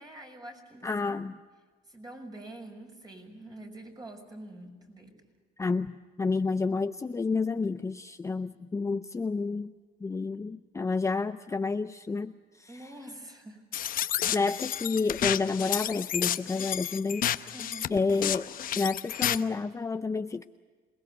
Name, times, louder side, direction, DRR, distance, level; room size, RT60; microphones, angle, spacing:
voice 1, 0.0-1.2 1.9-5.2 12.7-13.6 14.2-14.5 17.5-17.9, right 1 dB, 25° right, 3 dB, 6.2 m, -46 dB
voice 2, 0.8-1.4 5.6-9.7 10.0-12.3 12.6-12.9 14.3-17.3 17.9-18.5 18.7-20.4, left 4 dB, 15° left, 9 dB, 0.6 m, -30 dB
sound 1, 13.7-19.4, left 11 dB, 55° left, 0.9 m, -31 dB
27.0 x 20.5 x 6.8 m, 1.5 s
cardioid pair, 110°, 17 cm